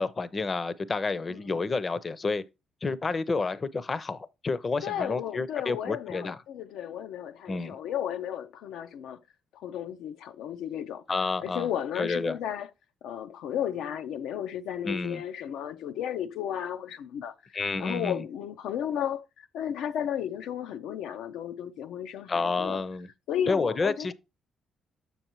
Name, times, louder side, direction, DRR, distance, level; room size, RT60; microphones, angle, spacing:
voice 1, 0.0-2.4 2.8-6.4 7.5-7.8 11.1-11.7 12.0-12.4 14.9-15.2 17.5-18.2 22.3-23.1 23.5-24.1, left 4 dB, 35° left, 0.5 m, -30 dB
voice 2, 4.8-9.2 9.5-11.0 11.4-12.7 13.0-22.8 23.3-24.1, left 9 dB, 85° left, 0.4 m, -34 dB
6.8 x 6.7 x 3.0 m
cardioid pair, 90°, 0 cm